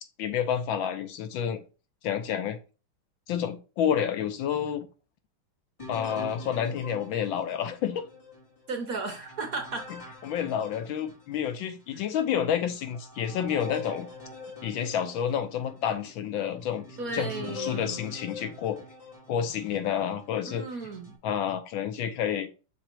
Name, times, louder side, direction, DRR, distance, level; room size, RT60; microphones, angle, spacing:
voice 1, 0.2-1.6 2.0-2.6 3.3-4.9 5.9-8.0 10.2-14.1 14.6-16.8 17.1-18.8 19.3-20.7 21.2-22.5, left 9 dB, 75° left, 1.4 m, -29 dB
sound 1, 5.8-11.5 12.1-12.2 12.8-20.0 20.6-21.2, left 2 dB, 15° left, 2.6 m, -44 dB
voice 2, 8.7-9.9 11.9-12.1 17.0-18.0 20.5-21.1, right 3 dB, 50° right, 1.2 m, -35 dB
6.2 x 3.8 x 4.5 m
omnidirectional pair, 2.3 m